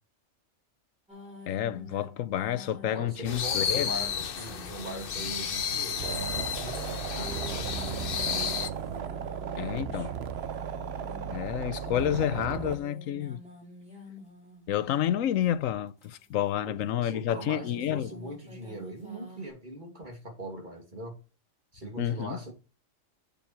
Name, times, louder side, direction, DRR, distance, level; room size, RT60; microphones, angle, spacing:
sound 1, 1.1-15.2 15.9-19.5, left 1 dB, 5° right, 4.4 m, -48 dB
voice 1, 1.5-4.0 9.6-10.1 11.3-13.4 14.7-18.1 22.0-22.4, left 11 dB, 85° left, 1.1 m, -29 dB
voice 2, 2.9-7.9 16.7-21.2 21.7-22.5, right 1 dB, 35° right, 2.7 m, -41 dB
sound 2, 3.3-8.7, left 7 dB, 50° left, 0.9 m, -32 dB
sound 3, 6.0-12.8, right 8 dB, 60° right, 0.9 m, -35 dB
8.0 x 7.1 x 4.6 m
omnidirectional pair, 1.3 m